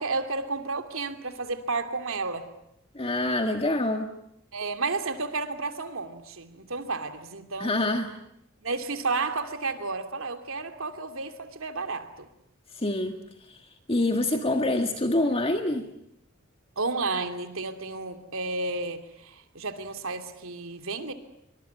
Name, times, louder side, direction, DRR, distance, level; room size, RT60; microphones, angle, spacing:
voice 1, 0.0-2.5 4.5-7.7 8.6-12.3 16.8-21.1, right 3 dB, 90° right, 2.8 m, -32 dB
voice 2, 3.0-4.1 7.6-8.1 12.8-13.2 13.5-13.6 13.9-15.9, left 1 dB, 30° left, 1.7 m, -26 dB
26.0 x 24.0 x 9.5 m
head